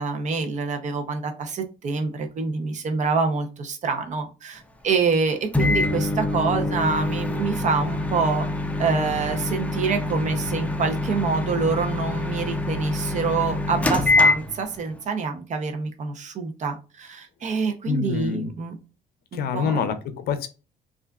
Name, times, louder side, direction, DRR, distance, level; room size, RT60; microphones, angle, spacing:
voice 1, 0.0-8.5 8.8-18.7 19.3-19.9, right 4 dB, 45° right, 6 dB, 0.7 m, -26 dB
Microwave oven, 5.5-14.9, left 2 dB, 10° left, 0.5 m, -25 dB
voice 2, 17.9-18.5 19.3-20.5, left 6 dB, 65° left, 11 dB, 0.5 m, -26 dB
3.3 x 2.4 x 2.3 m, 0.33 s
cardioid pair, 110°, 17 cm